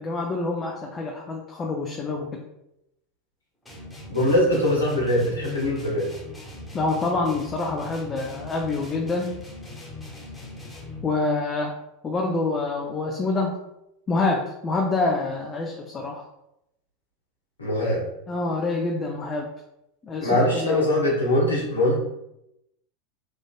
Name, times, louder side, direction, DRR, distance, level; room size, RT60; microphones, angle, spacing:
voice 1, 0.0-2.4 6.7-9.3 11.0-11.7 12.0-13.5 14.1-16.2 18.3-19.5 20.0-20.3 20.6-20.9, left 3 dB, 25° left, 1 dB, 0.4 m, -26 dB
sound 1, 3.7-11.2, left 2 dB, 10° left, 1.0 m, -40 dB
voice 2, 4.1-6.1 17.6-18.0 20.2-22.0, left 1 dB, 85° left, -4 dB, 0.9 m, -22 dB
3.1 x 2.5 x 2.2 m, 0.85 s
figure-of-eight pair, 85°, 0 cm